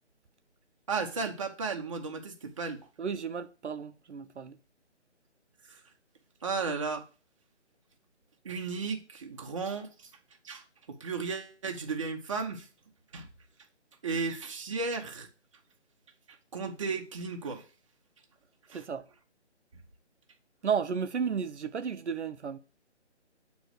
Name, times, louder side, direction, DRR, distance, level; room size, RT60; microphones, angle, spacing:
voice 1, 0.9-2.9 5.7-5.8 6.4-7.0 8.4-10.1 10.4-10.6 11.0-12.7 13.1-13.3 14.0-15.3 16.5-17.6 18.7-18.8, right 4 dB, 25° right, 0.8 m, -34 dB
voice 2, 3.0-4.6 18.7-19.0 20.6-22.6, right 6 dB, 70° right, 0.7 m, -33 dB
7.6 x 3.1 x 6.2 m
figure-of-eight pair, 155°, 35 cm